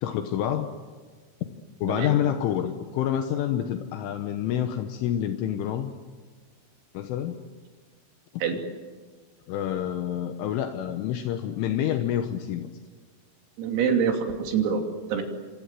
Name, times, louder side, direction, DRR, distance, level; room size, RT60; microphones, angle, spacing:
voice 1, 0.0-0.7 1.8-5.9 7.0-7.4 9.5-12.7, left 10 dB, 75° left, 7 dB, 3.5 m, -28 dB
voice 2, 13.6-14.8 15.1-15.2, right 7 dB, 85° right, 4 dB, 5.5 m, -25 dB
27.5 x 25.0 x 7.6 m, 1.5 s
omnidirectional pair, 5.9 m